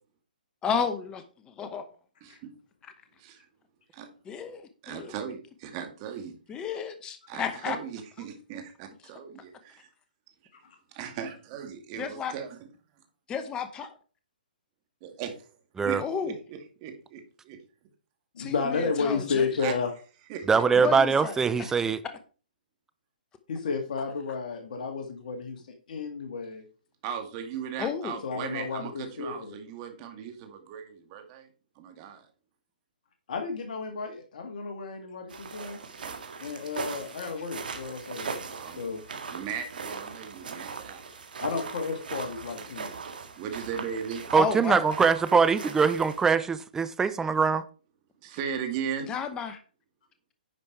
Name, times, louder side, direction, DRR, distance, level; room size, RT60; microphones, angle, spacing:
voice 1, 0.6-1.8 4.3-5.1 6.5-7.8 12.0-12.3 13.3-13.9 16.0-16.3 18.4-19.5 20.8-21.4 27.8-28.2 37.3-37.4 44.3-44.9 49.1-49.6, left 6 dB, 15° left, 0.9 m, -32 dB
voice 2, 2.2-2.5 3.2-3.3 4.0-4.1 4.8-6.6 7.3-9.9 10.9-12.7 15.0-15.4 15.8-17.6 19.6-19.7 20.3-20.9 27.0-31.5 31.8-32.3 38.5-38.9 39.3-41.1 43.4-44.2 48.2-49.1, right 7 dB, 35° right, 2.2 m, -37 dB
voice 3, 18.4-19.9 23.5-25.6 25.9-26.6 28.2-29.5 33.3-35.8 36.4-38.4 38.8-39.0 41.4-42.9, left 5 dB, 60° left, 1.9 m, -32 dB
voice 4, 20.5-22.0 44.3-47.6, right 5 dB, 10° right, 0.6 m, -23 dB
sound 1, 35.3-46.3, right 5 dB, 75° right, 1.9 m, -40 dB
10.0 x 5.2 x 4.6 m
hypercardioid pair, 140°, 5 cm